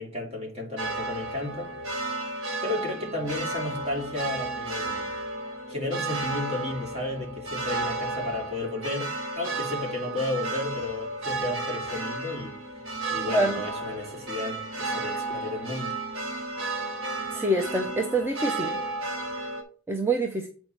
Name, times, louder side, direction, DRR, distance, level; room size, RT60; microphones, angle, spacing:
voice 1, 0.0-1.7 2.6-5.1 5.7-12.6 13.1-16.0, left 2 dB, 35° right, 2.7 m, -33 dB
sound 1, 0.8-19.6, right 2 dB, 80° right, 1.5 m, -33 dB
voice 2, 13.3-13.6 17.3-18.7 19.9-20.5, right 1 dB, 10° right, 0.6 m, -25 dB
8.3 x 4.5 x 4.3 m
head